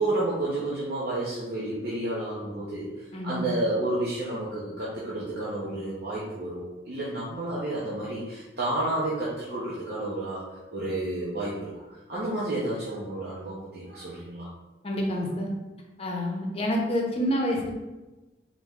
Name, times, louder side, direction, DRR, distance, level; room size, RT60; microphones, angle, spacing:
voice 1, 0.0-2.9 3.2-10.4 10.7-11.8 12.1-14.5, right 2 dB, 60° right, -8 dB, 0.9 m, -30 dB
voice 2, 3.1-3.6 14.8-15.5 16.0-17.7, equal, 35° left, -1 dB, 0.8 m, -28 dB
4.0 x 3.1 x 3.6 m, 1.1 s
head